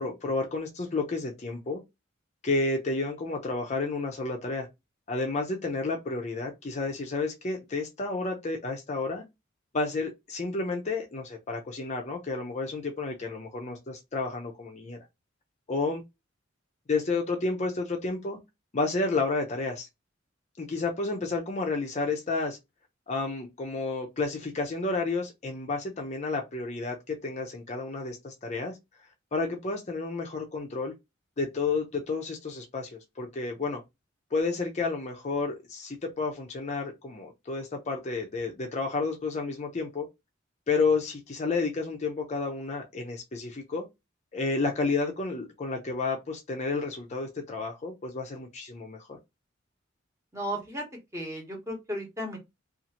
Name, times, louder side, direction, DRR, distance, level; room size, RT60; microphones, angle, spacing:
voice 1, 0.0-1.8 2.4-4.7 5.1-9.2 9.7-15.0 15.7-16.0 16.9-18.4 18.7-19.9 20.6-22.6 23.1-28.7 29.3-30.9 31.4-33.8 34.3-40.1 40.7-43.8 44.3-49.2, left 3 dB, 35° left, 0.5 m, -31 dB
voice 2, 50.3-50.8 51.1-52.4, equal, 15° right, 0.9 m, -34 dB
2.6 x 2.4 x 2.8 m
head